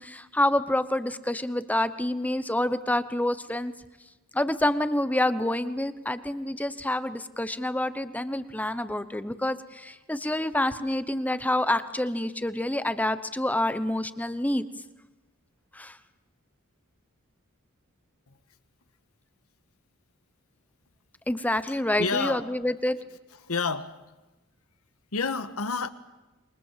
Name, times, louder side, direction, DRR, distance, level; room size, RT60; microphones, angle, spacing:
voice 1, 0.0-3.7 4.3-14.7 15.7-16.0 21.3-23.0, left 1 dB, 5° left, 13 dB, 0.9 m, -27 dB
voice 2, 21.7-22.6 23.3-24.0 25.1-25.9, left 4 dB, 75° left, 11 dB, 1.5 m, -30 dB
27.5 x 23.5 x 7.5 m, 1.1 s
head